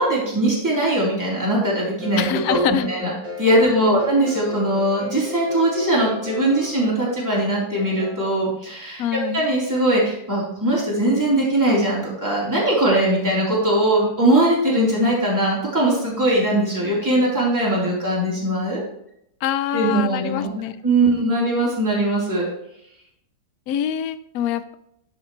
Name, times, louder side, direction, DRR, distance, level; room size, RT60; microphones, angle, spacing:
voice 1, 0.0-3.1 3.4-18.8 19.7-20.5 20.8-22.5, right 1 dB, 10° right, -6 dB, 3.4 m, -20 dB
sound 1, 2.0-8.3, left 3 dB, 80° right, 2.8 m, -36 dB
voice 2, 2.2-2.9 3.6-4.0 9.0-9.4 19.4-20.7 21.0-21.2 23.7-24.7, left 9 dB, 70° left, 13 dB, 0.9 m, -25 dB
11.5 x 6.7 x 3.1 m, 0.76 s
omnidirectional pair, 1.9 m